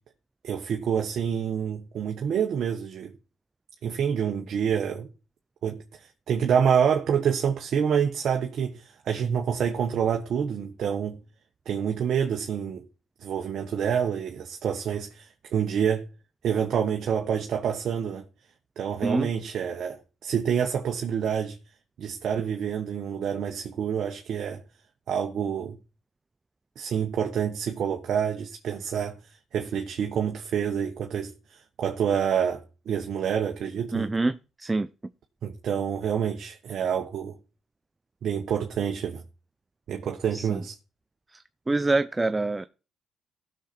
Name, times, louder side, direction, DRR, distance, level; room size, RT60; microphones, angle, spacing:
voice 1, 0.4-3.1 3.8-5.1 5.6-11.2 11.6-12.8 13.2-16.0 16.4-18.2 18.8-20.0 20.2-21.6 22.0-24.6 25.1-25.8 26.8-29.2 29.5-34.1 35.4-37.3 38.2-39.2 39.9-40.7, right 7 dB, 65° right, 1.3 m, -27 dB
voice 2, 19.0-19.3 33.9-34.9 40.3-40.6 41.3-42.7, right 2 dB, 20° right, 0.5 m, -26 dB
15.5 x 6.7 x 4.4 m
cardioid pair, 90°, 0 cm